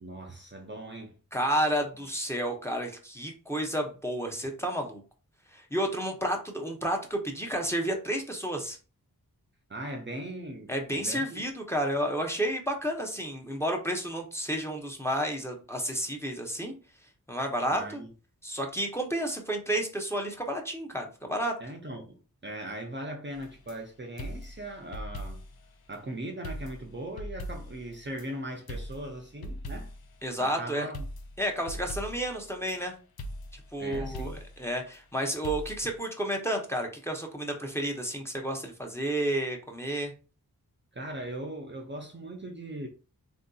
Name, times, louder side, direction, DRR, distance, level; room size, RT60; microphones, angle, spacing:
voice 1, 0.0-1.2 9.7-11.4 17.7-18.1 21.6-25.4 25.9-29.9 30.4-31.1 33.8-34.4 40.9-42.9, right 1 dB, 30° right, 0.5 m, -39 dB
voice 2, 1.3-5.0 5.5-8.8 10.7-16.7 17.3-18.0 18.4-21.5 30.2-30.9 31.4-32.9 33.7-40.1, right 1 dB, 5° left, 0.6 m, -31 dB
sound 1, 23.3-23.8 24.2-25.6 25.9-26.0 26.4-28.3 28.7-30.1 30.9-32.8 33.2-34.6 35.4-36.0, equal, 80° left, 0.5 m, -40 dB
3.5 x 2.6 x 2.3 m
wide cardioid pair, 75°, 36 cm